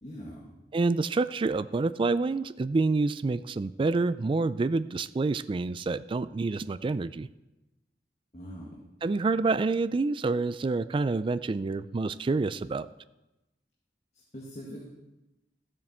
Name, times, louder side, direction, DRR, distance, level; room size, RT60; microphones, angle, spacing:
voice 1, 0.0-0.6 8.3-8.9 14.3-14.8, equal, 40° left, -4 dB, 1.8 m, -42 dB
voice 2, 0.7-7.3 9.0-12.9, right 3 dB, 30° right, 15 dB, 0.3 m, -27 dB
14.0 x 7.6 x 4.4 m, 1.0 s
head